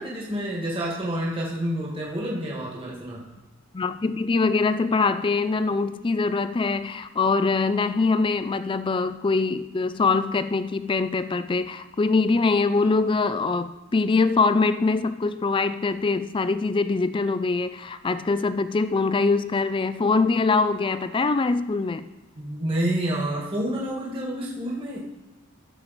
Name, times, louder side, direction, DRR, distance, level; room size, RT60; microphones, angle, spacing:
voice 1, 0.0-3.2 22.4-25.0, right 1 dB, 25° right, -4 dB, 1.7 m, -28 dB
voice 2, 3.7-22.1, left 4 dB, 25° left, 13 dB, 0.4 m, -23 dB
13.0 x 6.9 x 4.1 m, 1.1 s
head